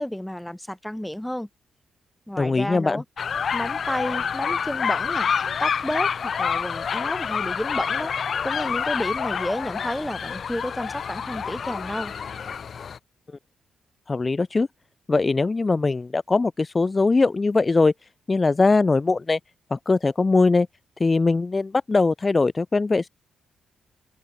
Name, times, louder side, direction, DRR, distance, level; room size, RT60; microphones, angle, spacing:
voice 1, 0.0-1.5 2.3-3.0 3.5-5.3 5.6-8.1 8.4-12.1, left 1 dB, 5° left, 3.3 m, -31 dB
voice 2, 2.4-3.0 14.1-14.7 15.1-17.9 18.3-19.4 19.7-20.7 21.0-23.1, left 3 dB, 25° left, 1.9 m, -21 dB
sound 1, 3.2-13.0, left 7 dB, 50° left, 3.9 m, -27 dB
cardioid pair, 95°, 0 cm